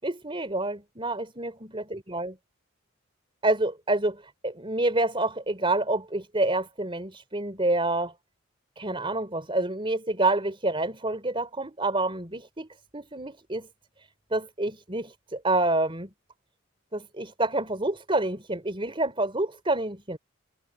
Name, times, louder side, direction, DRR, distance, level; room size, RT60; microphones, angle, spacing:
voice 1, 0.0-2.4 3.4-8.1 8.8-12.7 12.9-13.7 14.3-16.1 16.9-20.2, right 2 dB, 25° right, 4.2 m, -28 dB
head